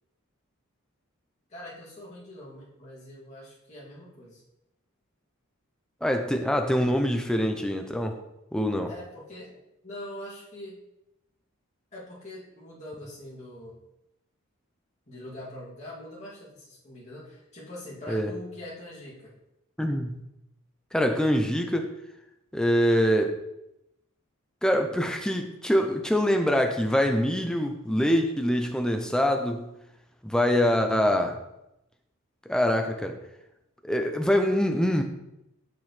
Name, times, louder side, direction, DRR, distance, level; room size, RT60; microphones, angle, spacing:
voice 1, 1.5-4.4 8.9-10.8 11.9-13.8 15.1-19.3, left 1 dB, 35° left, -7 dB, 2.4 m, -43 dB
voice 2, 6.0-8.2 8.5-8.9 18.1-18.3 19.8-20.2 20.9-21.9 22.5-23.4 24.6-29.7 30.2-31.4 32.5-33.2 33.8-35.0, equal, 5° left, 4 dB, 0.5 m, -24 dB
7.2 x 6.0 x 3.2 m, 0.88 s
head